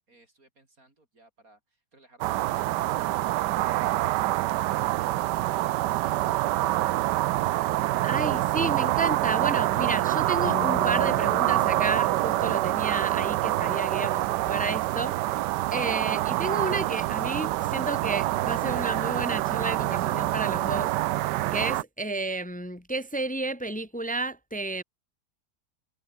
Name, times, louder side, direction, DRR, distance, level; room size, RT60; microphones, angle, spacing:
voice 1, 0.0-7.7, right 2 dB, 55° right, 5.2 m, -62 dB
sound 1, 2.2-21.8, right 16 dB, 90° right, 1.2 m, -26 dB
voice 2, 8.0-15.4 15.7-20.9 21.5-24.8, right 2 dB, 10° left, 0.4 m, -32 dB
sound 2, 10.5-13.6, left 14 dB, 75° left, 1.2 m, -41 dB
omnidirectional pair, 1.8 m